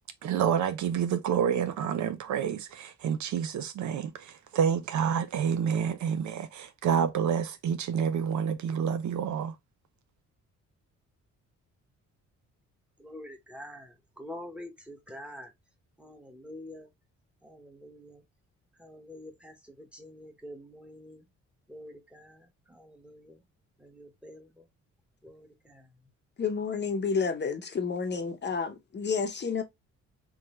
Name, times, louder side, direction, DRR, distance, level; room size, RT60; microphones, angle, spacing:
voice 1, 0.2-9.5, right 8 dB, 70° right, 0.7 m, -28 dB
voice 2, 13.0-15.5 16.0-16.9 17.4-18.2 18.8-21.2 21.7-22.4 22.7-23.4 23.8-24.5 25.2-25.8, left 1 dB, 5° right, 1.3 m, -46 dB
voice 3, 26.4-29.6, left 5 dB, 35° left, 0.8 m, -30 dB
3.9 x 2.9 x 3.1 m
cardioid pair, 90°, 30 cm